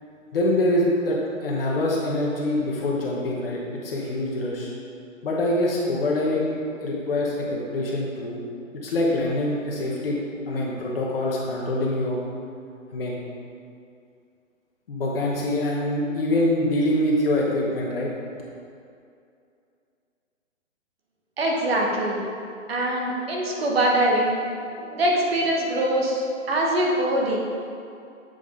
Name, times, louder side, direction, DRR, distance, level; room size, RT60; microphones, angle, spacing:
voice 1, 0.3-4.7 5.2-8.4 8.7-10.2 10.5-12.2 12.9-13.2 14.9-18.1, left 1 dB, 45° left, -4 dB, 1.1 m, -25 dB
voice 2, 21.4-22.2 22.7-24.3 24.7-27.4, right 1 dB, 50° right, -2 dB, 1.3 m, -23 dB
7.8 x 5.1 x 3.7 m, 2.5 s
hypercardioid pair, 165°, 39 cm